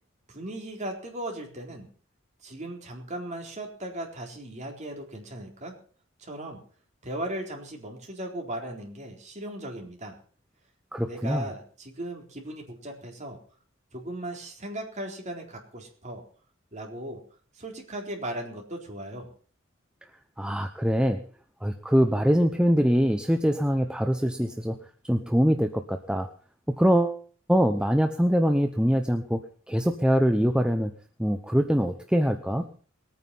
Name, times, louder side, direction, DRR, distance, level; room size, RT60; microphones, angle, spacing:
voice 1, 0.3-1.9 2.4-5.8 6.2-6.6 7.0-10.2 11.0-13.4 13.9-16.2 16.7-17.2 17.5-19.3, right 1 dB, 35° right, 1 dB, 4.1 m, -37 dB
voice 2, 10.9-11.4 20.4-21.2 21.6-24.8 25.0-26.3 26.7-27.2 27.5-29.4 29.7-30.9 31.2-32.7, equal, 5° right, 6 dB, 0.8 m, -23 dB
20.5 x 9.5 x 5.6 m, 0.43 s
head